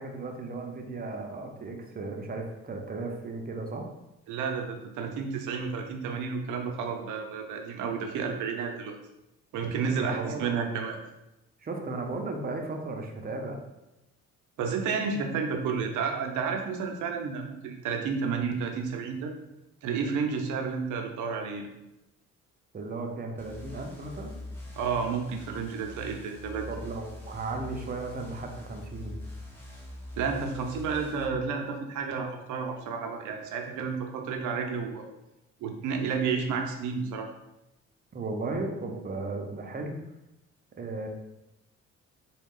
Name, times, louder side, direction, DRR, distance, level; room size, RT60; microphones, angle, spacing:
voice 1, 0.0-3.9 9.9-10.4 11.6-13.6 22.7-24.3 26.7-29.2 38.1-40.0 40.8-41.1, right 3 dB, 30° right, 2 dB, 0.7 m, -35 dB
voice 2, 4.3-8.9 9.5-11.0 14.6-19.3 19.8-21.7 24.8-26.7 30.2-35.1 35.6-37.3, right 5 dB, 80° right, 4 dB, 0.7 m, -31 dB
sound 1, 23.4-31.2, left 1 dB, 5° left, 1.0 m, -43 dB
3.9 x 2.3 x 3.7 m, 0.91 s
cardioid pair, 90°, 30 cm